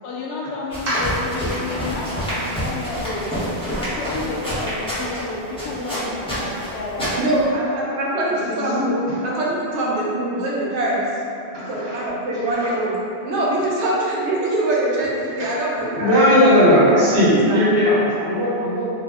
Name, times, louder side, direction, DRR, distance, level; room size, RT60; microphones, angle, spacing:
voice 1, 0.0-3.3 3.7-7.2 8.2-9.0, left 2 dB, 75° left, -3 dB, 0.8 m, -31 dB
sound 1, 0.7-7.5, equal, 5° left, 0.8 m, -28 dB
voice 2, 7.2-11.1 11.5-12.9 13.2-16.1 16.7-17.6, right 1 dB, 85° right, -5 dB, 0.9 m, -23 dB
voice 3, 11.5-12.0 12.5-12.7 15.3-18.9, equal, 55° right, -11 dB, 1.2 m, -18 dB
2.4 x 2.0 x 3.4 m, 2.8 s
omnidirectional pair, 1.1 m